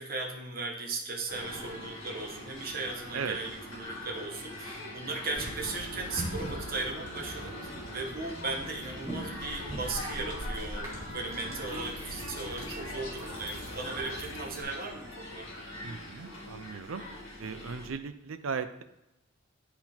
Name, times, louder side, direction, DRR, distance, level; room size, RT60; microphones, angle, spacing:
voice 1, 0.0-10.9 11.1-15.5, right 3 dB, 45° right, 1 dB, 1.2 m, -37 dB
sound 1, 1.3-17.9, left 1 dB, 65° left, 2.3 m, -42 dB
sound 2, 5.3-14.6, right 1 dB, 15° right, 2.1 m, -42 dB
voice 2, 15.8-17.0 17.4-18.8, right 5 dB, 80° right, 10 dB, 0.5 m, -37 dB
10.5 x 3.9 x 4.3 m, 0.89 s
head